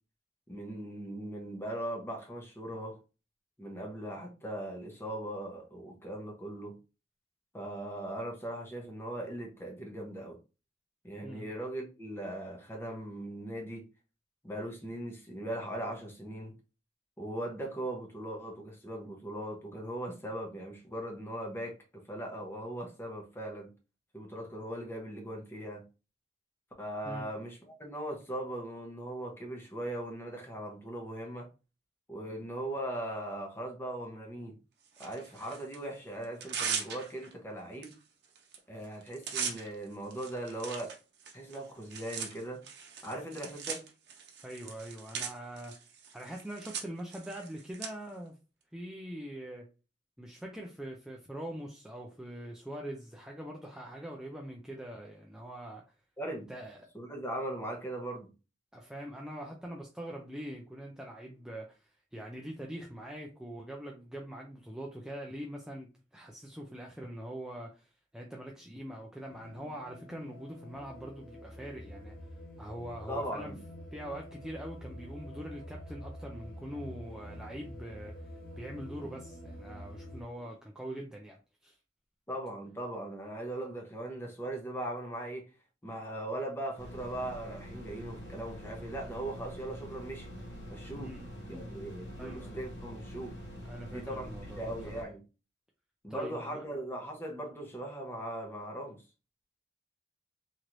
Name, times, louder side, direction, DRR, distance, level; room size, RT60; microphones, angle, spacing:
voice 1, 0.5-3.0 3.6-6.8 7.5-10.4 11.0-13.8 14.4-16.5 17.2-23.7 24.1-25.8 26.8-31.5 32.1-34.5 35.0-37.9 38.7-40.9 41.3-42.6 43.0-43.8 56.2-56.5 56.9-58.3 73.1-73.6 82.3-85.5 85.8-90.3 90.7-91.2 91.5-93.3 93.9-95.2 96.0-99.0, right 1 dB, 15° left, 0.8 m, -39 dB
Tearing, 35.0-35.8 36.2-37.3 37.8-37.9 38.2-38.6 38.8-47.9, right 7 dB, 65° right, 0.7 m, -40 dB
voice 2, 44.4-45.7 46.1-48.4 48.7-49.7 50.2-55.8 56.5-56.8 58.7-72.2 72.6-73.5 73.9-78.2 78.6-81.8 91.0-92.6 93.6-95.0 96.1-96.6, right 1 dB, 5° right, 0.4 m, -43 dB
sound 1, 69.3-80.2, equal, 50° left, 0.7 m, -47 dB
sound 2, 86.8-95.0, equal, 75° left, 1.0 m, -45 dB
3.0 x 3.0 x 2.5 m
head